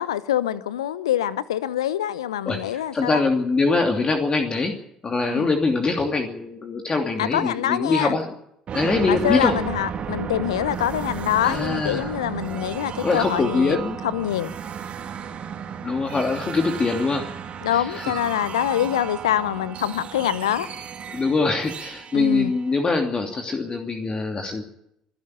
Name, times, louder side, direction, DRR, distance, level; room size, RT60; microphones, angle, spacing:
voice 1, 0.0-3.2 5.2-5.5 7.2-8.2 9.1-13.8 14.0-14.5 17.6-20.7 22.1-22.5, left 11 dB, 80° left, 0.9 m, -25 dB
voice 2, 2.5-4.7 5.0-8.3 8.7-9.6 11.4-12.1 13.0-14.0 15.8-17.3 17.7-18.0 21.1-24.6, left 3 dB, 30° left, 2.8 m, -23 dB
sound 1, 8.7-23.3, right 7 dB, 45° right, 3.1 m, -34 dB
25.5 x 11.5 x 8.8 m
figure-of-eight pair, 55°, 3 cm